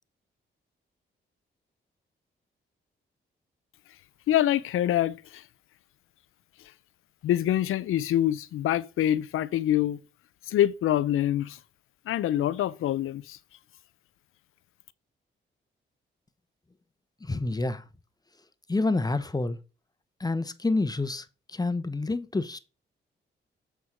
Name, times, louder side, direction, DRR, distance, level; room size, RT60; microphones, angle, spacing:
voice 1, 4.3-5.4 7.2-10.0 10.5-11.6 12.1-13.4, left 12 dB, 80° left, 0.6 m, -25 dB
voice 2, 17.3-17.8 18.7-19.6 20.2-21.2 21.5-22.6, left 2 dB, 20° left, 0.9 m, -28 dB
8.1 x 4.5 x 4.6 m
cardioid pair, 65°, 21 cm